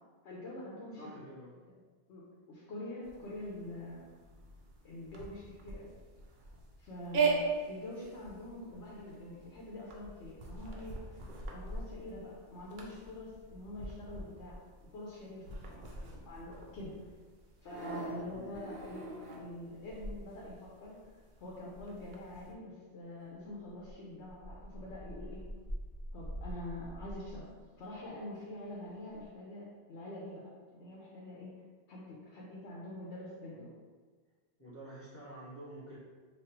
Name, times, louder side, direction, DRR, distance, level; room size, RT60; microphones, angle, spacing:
voice 1, 0.2-1.2 2.1-2.2 2.5-4.0 4.8-5.9 6.8-11.2 11.5-14.6 14.9-17.1 17.6-19.0 19.4-21.0 21.4-25.5 26.1-27.5 27.8-31.5 31.9-33.7, left 1 dB, 85° left, -5 dB, 1.0 m, -45 dB
voice 2, 1.0-1.6 18.3-18.6 33.5-33.7 34.6-36.0, right 1 dB, 15° left, -9 dB, 0.9 m, -49 dB
sound 1, 3.0-22.5, right 4 dB, 55° right, 0.6 m, -40 dB
sound 2, 23.5-28.1 28.4-28.5 28.9-29.3, equal, 35° left, 1.4 m, -44 dB
3.2 x 2.3 x 4.3 m, 1.4 s
omnidirectional pair, 1.2 m